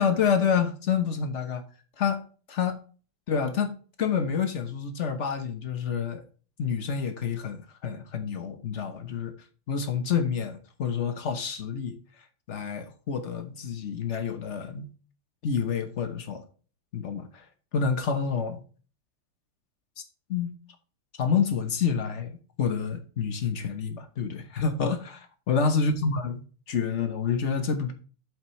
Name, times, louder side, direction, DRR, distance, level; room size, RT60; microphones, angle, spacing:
voice 1, 0.0-1.6 2.0-2.8 3.3-6.3 6.6-9.3 9.7-12.0 12.5-14.9 15.4-16.4 16.9-17.5 17.7-18.6 20.3-20.5 21.2-26.4 26.7-27.9, left 6 dB, 55° left, 0.8 m, -28 dB
8.1 x 7.6 x 3.1 m
omnidirectional pair, 2.4 m